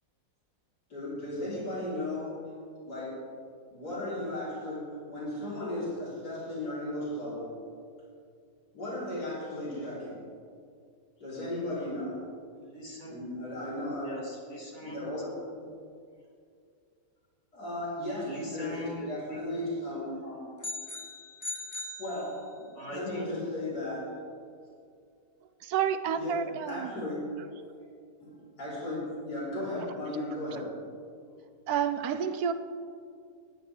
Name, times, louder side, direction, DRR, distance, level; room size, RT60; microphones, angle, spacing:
voice 1, 0.9-2.4 2.8-3.2 3.7-7.6 8.7-10.2 11.2-12.2 13.1-14.2 14.8-15.4 17.5-20.4 22.0-24.1 26.2-26.4 26.7-27.2 28.2-28.3 28.6-30.7, left 1 dB, 75° left, -9 dB, 4.2 m, -36 dB
voice 2, 12.6-13.3 14.0-15.1 15.6-15.7 18.3-19.7 22.7-23.4, equal, 45° left, -4 dB, 2.6 m, -41 dB
sound 1, 20.6-22.8, left 2 dB, 30° left, 0.3 m, -40 dB
voice 3, 25.6-26.9 30.5-30.6 31.7-32.5, right 8 dB, 75° right, 10 dB, 1.0 m, -29 dB
19.0 x 10.5 x 3.3 m, 2.3 s
omnidirectional pair, 1.7 m